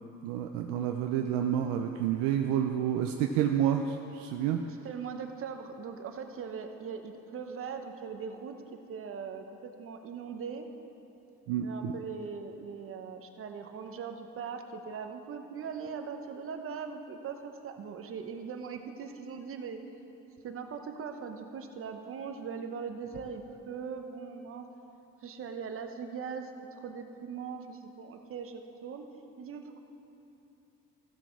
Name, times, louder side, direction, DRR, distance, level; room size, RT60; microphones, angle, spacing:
voice 1, 0.2-4.6 11.5-11.9, right 9 dB, 85° right, 4 dB, 0.6 m, -29 dB
voice 2, 4.7-8.5 8.9-10.7 11.6-19.8 20.4-24.6 25.2-26.5 26.8-29.0 29.4-29.8, right 6 dB, 45° right, 6 dB, 1.0 m, -40 dB
15.5 x 6.1 x 4.7 m, 2.9 s
supercardioid pair, 95°, 31 cm